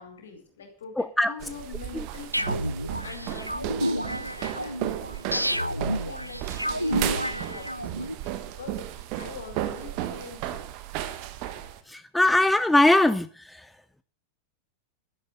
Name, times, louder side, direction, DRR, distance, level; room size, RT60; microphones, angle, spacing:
voice 1, 0.0-2.6 3.0-4.9 5.2-8.9 9.1-10.7, left 5 dB, 65° left, 5 dB, 4.6 m, -44 dB
voice 2, 1.0-1.3 12.1-13.3, left 1 dB, 5° left, 13 dB, 0.6 m, -19 dB
sound 1, 1.4-11.8, right 13 dB, 45° right, 1.5 m, -34 dB
sound 2, 2.3-8.1, equal, 90° right, 0.5 m, -30 dB
12.0 x 11.0 x 6.5 m, 0.42 s
figure-of-eight pair, 90°, 0 cm